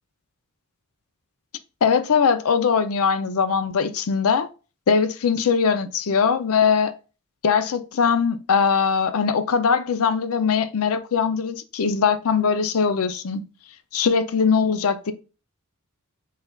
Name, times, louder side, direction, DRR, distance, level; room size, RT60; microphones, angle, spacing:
voice 1, 1.8-4.5 4.9-6.9 7.4-13.4 13.9-15.1, left 6 dB, 65° left, 0.5 m, -21 dB
4.1 x 3.9 x 2.3 m
head